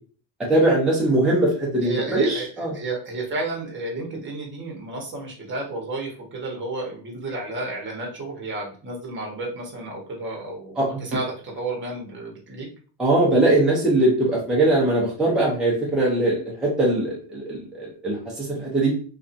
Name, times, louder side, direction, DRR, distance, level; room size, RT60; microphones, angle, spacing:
voice 1, 0.5-2.7 10.8-11.0 13.0-18.9, right 2 dB, ahead, -5 dB, 0.6 m, -21 dB
voice 2, 1.8-2.5 2.7-12.7, right 2 dB, 25° right, -1 dB, 0.9 m, -32 dB
2.6 x 2.3 x 2.5 m, 0.41 s
cardioid pair, 135°, 50 cm